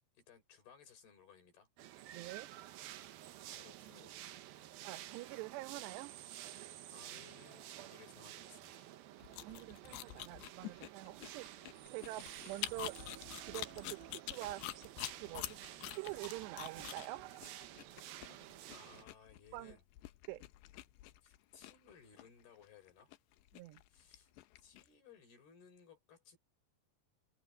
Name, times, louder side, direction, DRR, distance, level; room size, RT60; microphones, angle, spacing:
voice 1, 0.0-1.7 3.5-4.6 6.9-8.9 18.7-19.8 21.2-23.1 23.9-24.3 24.6-26.4, left 6 dB, 65° left, 6.4 m, -61 dB
sound 1, 1.8-19.0, right 13 dB, 70° right, 2.7 m, -51 dB
voice 2, 2.1-2.5 3.9-4.0 4.8-6.1 9.4-11.6 11.9-13.0 13.4-14.9 15.2-15.6 15.9-17.3 19.5-19.8 20.3-20.4 23.5-23.8, right 18 dB, 85° right, 3.0 m, -46 dB
sound 2, 9.2-24.9, left 16 dB, 85° left, 3.1 m, -47 dB
omnidirectional pair, 4.8 m